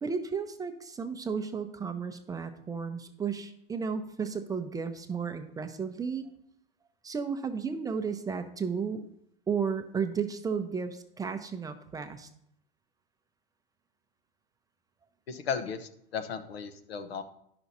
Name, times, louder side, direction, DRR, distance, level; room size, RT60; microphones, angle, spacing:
voice 1, 0.0-6.3 7.0-9.0 9.5-12.3, right 6 dB, 10° right, 8 dB, 0.5 m, -33 dB
voice 2, 15.3-17.2, left 6 dB, 90° left, 8 dB, 1.0 m, -35 dB
10.0 x 6.0 x 4.1 m, 0.73 s
hypercardioid pair, 120°, 30 cm